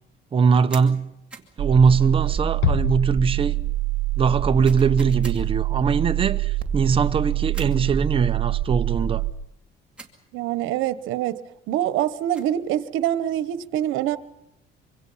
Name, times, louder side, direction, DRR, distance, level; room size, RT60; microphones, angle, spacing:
voice 1, 0.3-1.1 1.6-3.5 4.2-9.3, right 5 dB, 25° right, 0.8 m, -21 dB
sound 1, 0.7-0.9 1.3-1.6 4.6-5.4 7.5-7.8 10.0-10.2 12.1-12.6, right 3 dB, 5° right, 2.4 m, -42 dB
sound 2, 1.6-9.3, right 14 dB, 45° right, 2.0 m, -25 dB
Bass drum, 2.6-4.0, left 8 dB, 75° left, 1.1 m, -27 dB
voice 2, 10.3-11.4 11.7-14.2, right 12 dB, 80° right, 1.1 m, -25 dB
25.5 x 25.0 x 5.6 m
cardioid pair, 155°, 20 cm